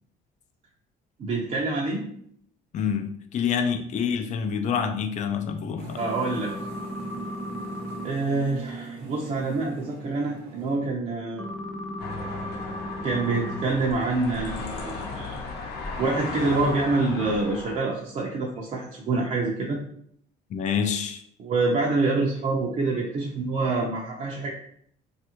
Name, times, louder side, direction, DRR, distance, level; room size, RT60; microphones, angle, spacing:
voice 1, 1.2-2.0 6.0-6.5 8.0-11.5 13.0-15.4 16.0-19.8 21.4-24.5, right 3 dB, 45° right, -1 dB, 0.5 m, -26 dB
voice 2, 2.7-6.0 20.5-21.2, left 7 dB, 45° left, 6 dB, 0.4 m, -27 dB
sound 1, 5.8-10.8, right 4 dB, 75° right, 0.8 m, -41 dB
sound 2, 6.0-8.0 11.4-13.6 17.2-17.4, left 1 dB, ahead, 0.6 m, -35 dB
sound 3, 12.0-17.8, left 3 dB, 70° left, 0.8 m, -35 dB
3.2 x 2.4 x 2.9 m, 0.67 s
cardioid pair, 110°, 17 cm